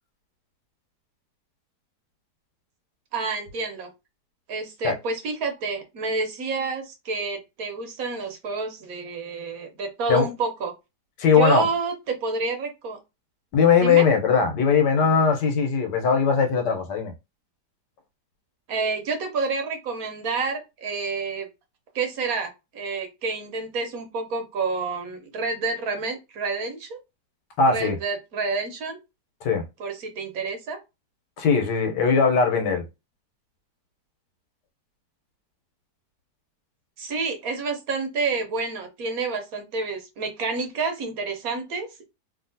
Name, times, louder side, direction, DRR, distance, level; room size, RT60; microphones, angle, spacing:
voice 1, 3.1-3.9 4.5-10.7 11.3-13.0 13.8-14.1 18.7-21.5 21.9-27.0 27.7-29.0 29.8-30.8 37.0-42.0, right 4 dB, 65° right, 1.2 m, -29 dB
voice 2, 11.2-11.7 13.5-17.1 27.6-28.0 29.4-29.6 31.4-32.8, left 5 dB, 85° left, 1.5 m, -20 dB
2.8 x 2.8 x 2.7 m
omnidirectional pair, 1.8 m